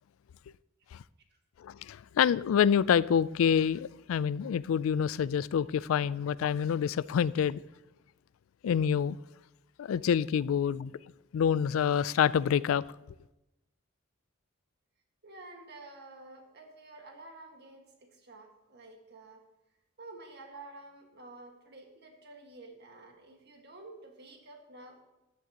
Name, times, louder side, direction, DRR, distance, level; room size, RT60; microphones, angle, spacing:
voice 1, 1.6-7.6 8.6-9.2 9.8-10.9 11.3-12.9, left 8 dB, 80° left, 0.3 m, -27 dB
voice 2, 15.2-19.4 20.0-25.0, right 2 dB, 55° right, 1.6 m, -50 dB
15.0 x 10.5 x 2.9 m
head